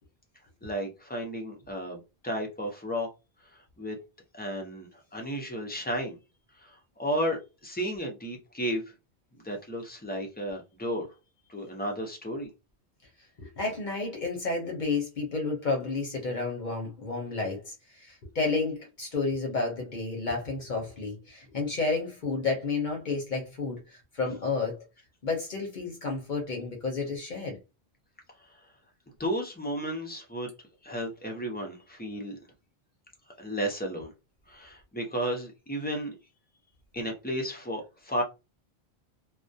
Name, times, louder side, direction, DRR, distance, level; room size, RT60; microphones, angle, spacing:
voice 1, 0.6-3.1 3.8-4.0 4.3-6.2 6.6-8.8 9.4-11.1 11.5-12.5 29.2-30.5 30.8-32.4 33.4-34.1 34.5-36.1 36.9-38.2, equal, 15° left, 0.3 m, -33 dB
voice 2, 13.4-24.8 25.2-27.6, left 3 dB, 50° left, 0.7 m, -31 dB
2.3 x 2.1 x 2.6 m
omnidirectional pair, 1.1 m